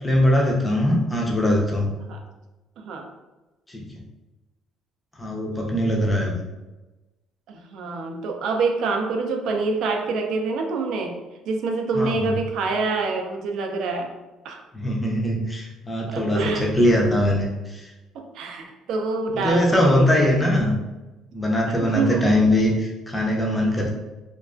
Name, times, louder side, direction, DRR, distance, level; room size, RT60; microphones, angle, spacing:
voice 1, 0.0-1.9 3.7-4.0 5.2-6.4 11.9-12.3 14.7-17.9 19.3-20.8 21.3-23.9, left 1 dB, 10° left, -1 dB, 0.5 m, -21 dB
voice 2, 2.8-3.1 7.5-11.2 11.5-14.2 14.4-14.6 16.1-16.7 18.1-20.2 21.8-22.4, right 3 dB, 65° right, 3 dB, 0.4 m, -26 dB
2.3 x 2.2 x 2.4 m, 1.1 s
cardioid pair, 140°, 0 cm